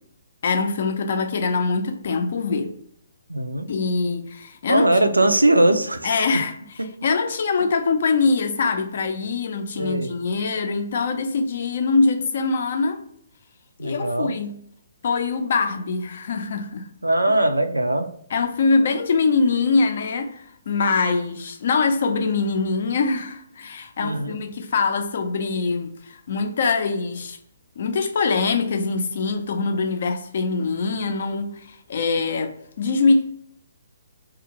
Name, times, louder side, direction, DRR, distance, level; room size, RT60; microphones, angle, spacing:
voice 1, 0.4-2.7 3.7-4.9 6.0-6.5 7.0-13.0 13.8-14.6 15.0-16.9 18.3-27.4 27.8-33.3, left 4 dB, 50° left, 0.4 m, -23 dB
voice 2, 3.3-3.7 4.7-6.1 9.7-10.1 13.8-14.4 17.0-18.1 24.0-24.4, right 1 dB, 85° right, 0.3 m, -20 dB
2.5 x 2.3 x 2.9 m
figure-of-eight pair, 130°, 0 cm